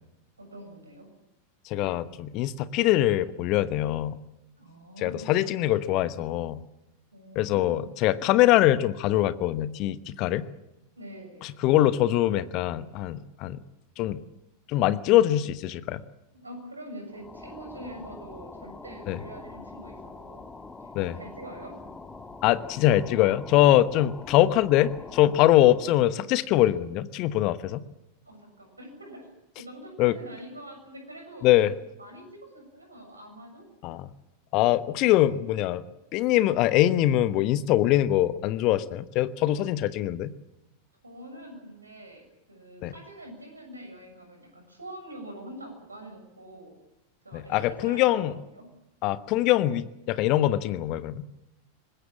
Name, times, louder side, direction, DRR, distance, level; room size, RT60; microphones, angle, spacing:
voice 1, 0.4-1.1 4.6-5.4 7.1-8.0 11.0-11.5 16.3-20.5 20.8-21.8 28.3-29.2 29.6-31.5 32.0-33.7 41.0-46.7 47.2-48.7, right 1 dB, 80° right, 5 dB, 7.1 m, -44 dB
voice 2, 1.7-4.2 5.0-6.6 7.3-10.5 11.4-13.6 14.0-14.2 14.7-16.0 19.1-19.2 20.9-21.2 22.4-27.8 30.0-30.1 31.4-31.7 33.8-34.1 34.5-35.8 36.1-40.3 42.8-42.9 47.3-48.3 49.0-51.2, left 14 dB, 40° left, 15 dB, 1.0 m, -23 dB
sound 1, 17.1-26.0, left 3 dB, 10° left, 1.6 m, -44 dB
24.0 x 20.5 x 7.4 m, 0.92 s
figure-of-eight pair, 90°, 0 cm